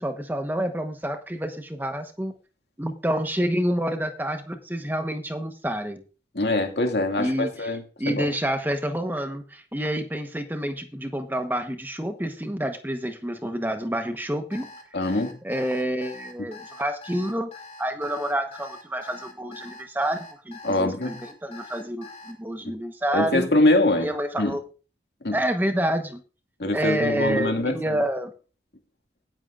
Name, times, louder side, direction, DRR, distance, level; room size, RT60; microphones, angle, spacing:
voice 1, 0.0-2.3 2.8-6.0 7.2-7.5 8.0-14.7 15.4-17.5 17.8-23.5 24.0-24.6 25.3-26.2 26.7-28.3, right 1 dB, 10° right, 1.1 m, -28 dB
voice 2, 6.3-8.3 14.9-15.4 16.4-16.5 20.6-21.2 22.6-22.7 23.1-24.1 24.4-24.6 25.2-25.4 26.6-28.0, left 1 dB, 75° left, 2.1 m, -24 dB
Alarm, 14.5-22.3, left 3 dB, 35° left, 2.7 m, -44 dB
17.5 x 9.1 x 2.5 m
head